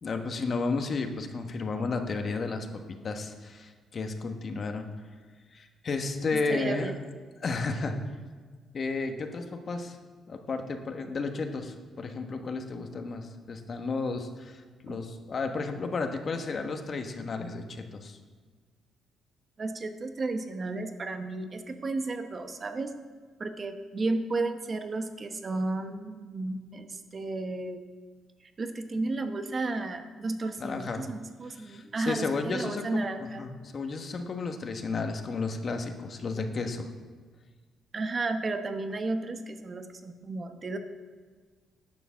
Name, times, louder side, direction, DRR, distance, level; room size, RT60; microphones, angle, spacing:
voice 1, 0.0-4.8 5.5-6.9 7.4-8.0 8.7-10.0 10.3-18.2 30.6-31.0 31.6-36.9, left 4 dB, 45° left, 6 dB, 1.2 m, -33 dB
voice 2, 6.3-6.9 14.9-15.0 19.6-22.9 23.4-27.8 28.6-33.4 37.9-40.8, right 2 dB, 35° right, 7 dB, 1.0 m, -33 dB
10.5 x 7.0 x 6.3 m, 1.5 s
cardioid pair, 90°, 0 cm